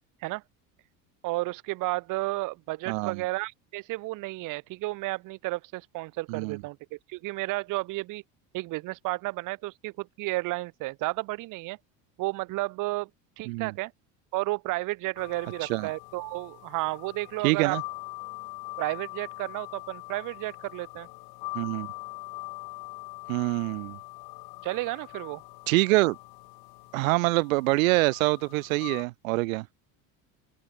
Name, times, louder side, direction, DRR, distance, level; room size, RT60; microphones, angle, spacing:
voice 1, 1.2-8.2 8.5-11.8 12.2-13.1 13.4-13.9 14.3-17.8 18.8-21.1 24.6-25.4, right 21 dB, 50° right, 0.8 m, -32 dB
voice 2, 2.9-3.2 6.3-6.6 13.5-13.7 15.6-15.9 17.4-17.8 21.5-21.9 23.3-24.0 25.7-26.2 26.9-29.7, right 23 dB, 85° right, 0.8 m, -25 dB
sound 1, 15.2-29.0, left 24 dB, 65° left, 3.4 m, -43 dB
open air
supercardioid pair, 95°, 39 cm